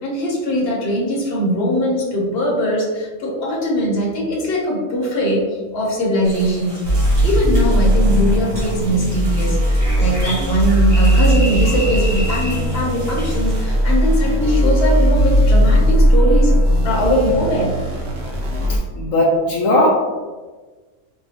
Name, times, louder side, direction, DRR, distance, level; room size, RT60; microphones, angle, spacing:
voice 1, 0.0-6.8 7.2-17.7, equal, 50° left, -3 dB, 1.0 m, -21 dB
sound 1, 6.2-13.6, equal, 45° right, 1.4 m, -31 dB
sound 2, 6.8-18.8, equal, 60° right, 1.0 m, -17 dB
voice 2, 18.7-19.9, left 1 dB, 75° left, -2 dB, 1.0 m, -17 dB
4.6 x 2.3 x 2.8 m, 1.3 s
omnidirectional pair, 1.4 m